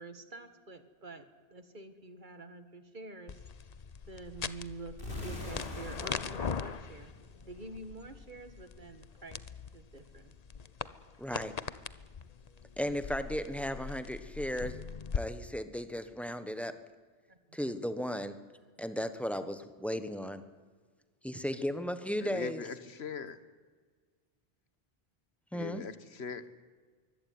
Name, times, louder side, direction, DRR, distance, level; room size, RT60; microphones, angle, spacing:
voice 1, 0.0-3.4 4.1-7.1 7.5-9.4 9.7-10.4 17.3-17.6, right 2 dB, 50° right, 10 dB, 1.9 m, -47 dB
sound 1, 3.3-15.2, left 6 dB, 45° left, 0.8 m, -41 dB
sound 2, 5.0-7.9, left 1 dB, 60° left, 4.5 m, -44 dB
voice 2, 11.2-11.5 12.8-14.8 15.1-16.8 17.5-18.3 18.8-20.4 21.2-22.6 25.5-25.8, equal, ahead, 11 dB, 1.2 m, -35 dB
voice 3, 22.2-23.4 25.5-26.5, left 5 dB, 90° left, 13 dB, 1.5 m, -41 dB
23.5 x 16.5 x 9.6 m, 1.5 s
omnidirectional pair, 1.0 m